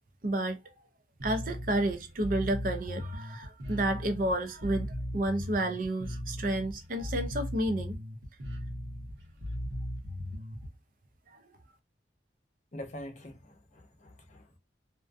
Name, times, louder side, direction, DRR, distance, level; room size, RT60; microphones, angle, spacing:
voice 1, 0.2-0.6 1.2-8.0, right 1 dB, 45° right, 0.4 m, -31 dB
Bass guitar, 1.2-10.7, left 1 dB, 80° right, 0.8 m, -38 dB
voice 2, 12.7-14.6, left 1 dB, 40° left, 0.6 m, -45 dB
2.4 x 2.2 x 2.4 m
head